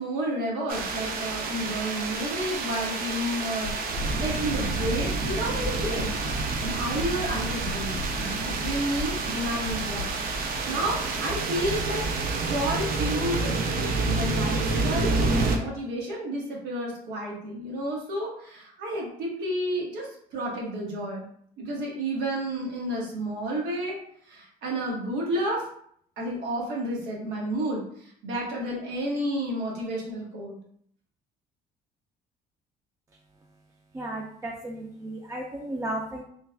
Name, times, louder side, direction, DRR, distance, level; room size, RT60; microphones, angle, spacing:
voice 1, 0.0-6.1 6.6-10.1 10.4-12.1 12.4-15.1 15.5-21.2 21.6-24.0 24.2-25.6 26.2-30.6, right 1 dB, 90° right, -2 dB, 1.2 m, -31 dB
sound 1, 0.7-15.6, right 3 dB, 60° right, 0.6 m, -28 dB
sound 2, 3.6-4.1 4.6-5.1 5.6-6.1 6.6-7.1 7.6-8.1 8.6-9.1 9.6-10.1 10.6-10.7, left 3 dB, 60° left, 0.5 m, -36 dB
voice 2, 33.9-36.2, right 1 dB, 15° right, -1 dB, 0.4 m, -34 dB
3.3 x 2.3 x 3.3 m, 0.64 s
cardioid pair, 110°, 17 cm